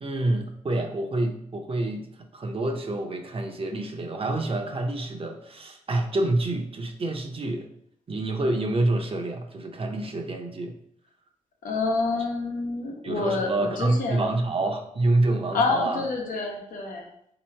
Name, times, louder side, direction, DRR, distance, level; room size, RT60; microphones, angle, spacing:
voice 1, 0.0-2.1 2.3-7.7 8.1-10.7 13.0-16.1, right 2 dB, 45° right, 4 dB, 0.7 m, -27 dB
voice 2, 11.6-14.2 15.5-17.1, left 3 dB, 85° left, 0 dB, 1.0 m, -27 dB
3.6 x 2.9 x 4.4 m, 0.70 s
cardioid pair, 70°, 14 cm